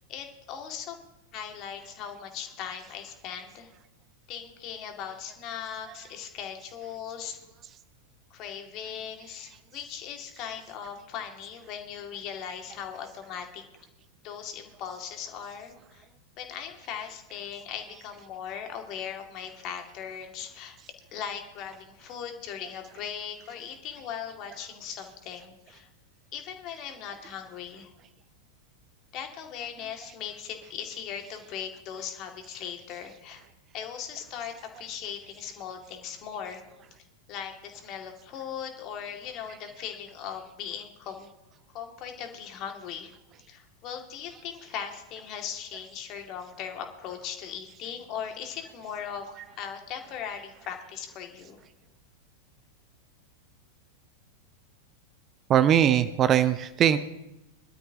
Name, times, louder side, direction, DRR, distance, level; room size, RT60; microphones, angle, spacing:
voice 1, 0.1-1.0 1.3-3.7 4.3-7.4 8.3-13.6 14.2-16.1 16.4-20.8 21.1-25.9 26.3-27.9 29.1-33.4 33.7-36.6 37.3-41.3 41.7-43.1 43.5-51.6, left 8 dB, 40° left, 4 dB, 2.3 m, -39 dB
voice 2, 55.5-57.0, right 10 dB, 30° right, 13 dB, 0.6 m, -21 dB
23.0 x 12.5 x 2.9 m, 0.95 s
figure-of-eight pair, 90°, 0 cm